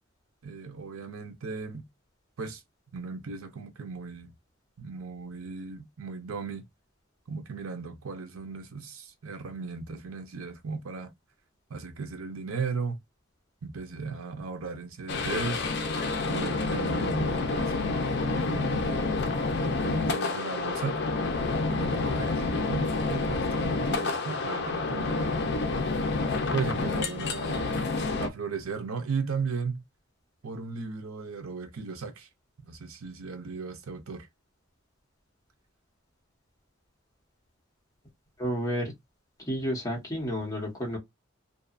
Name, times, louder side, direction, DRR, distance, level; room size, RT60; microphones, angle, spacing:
voice 1, 0.4-1.8 2.4-2.6 2.9-4.3 4.8-6.6 7.3-11.1 11.7-13.0 13.6-15.7 16.2-19.3 19.6-21.0 21.7-25.4 26.5-27.8 28.2-29.8 30.4-32.3 32.6-34.3, right 4 dB, 90° right, 0.6 m, -36 dB
sound 1, 15.1-28.3, left 3 dB, 55° left, 0.5 m, -28 dB
voice 2, 38.4-38.9 39.5-41.0, equal, 15° left, 0.9 m, -31 dB
2.7 x 2.3 x 2.3 m
head